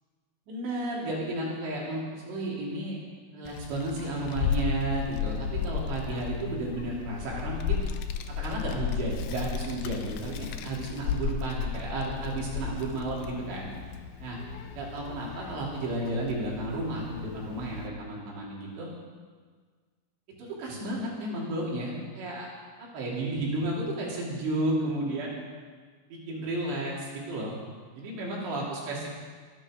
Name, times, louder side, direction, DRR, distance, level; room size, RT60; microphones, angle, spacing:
voice 1, 0.5-3.0 3.3-7.8 8.3-13.7 14.2-14.4 14.7-18.9 20.4-22.5 22.8-25.3 26.1-27.6 27.9-29.1, right 2 dB, 70° right, -4 dB, 5.0 m, -32 dB
Child speech kid speaking, 3.4-17.9, left 7 dB, 80° left, 2.2 m, -34 dB
22.5 x 10.5 x 5.1 m, 1.6 s
omnidirectional pair, 5.3 m